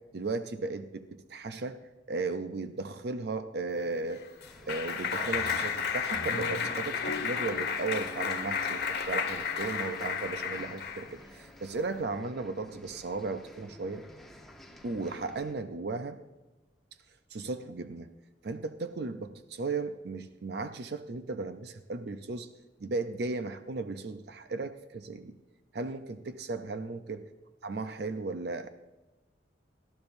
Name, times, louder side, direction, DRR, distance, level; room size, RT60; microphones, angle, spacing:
voice 1, 0.1-1.8 2.1-4.2 4.7-14.0 14.8-16.2 17.3-18.1 18.4-22.5 22.8-25.3 25.7-27.2 27.6-28.7, right 3 dB, 60° right, 9 dB, 0.6 m, -35 dB
Clapping, 3.8-11.1, left 6 dB, 60° left, 1.3 m, -32 dB
sound 1, 4.4-15.5, left 1 dB, ahead, 1.1 m, -52 dB
19.0 x 12.5 x 2.6 m, 1.1 s
head